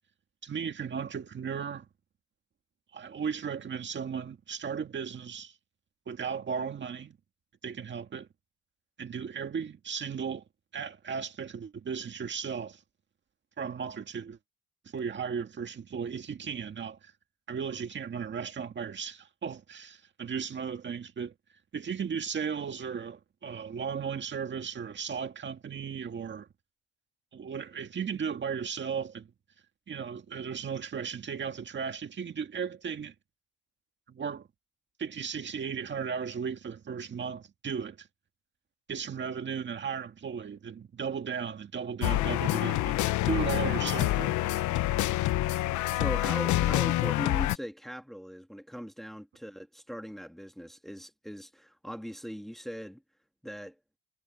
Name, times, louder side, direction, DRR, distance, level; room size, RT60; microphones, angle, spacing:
voice 1, 0.4-1.9 2.9-5.6 6.1-7.2 7.6-8.3 9.0-10.4 10.7-12.8 13.6-14.4 14.9-17.1 17.5-21.3 21.7-26.5 27.3-29.3 29.9-33.2 34.1-34.5 35.0-38.1 38.9-43.0 43.3-44.6, right 6 dB, 40° right, 1.9 m, -36 dB
sound 1, 42.0-47.6, left 16 dB, 75° left, 1.1 m, -27 dB
voice 2, 45.9-53.0 53.4-53.8, equal, ahead, 2.0 m, -40 dB
cardioid pair, 105°, 30 cm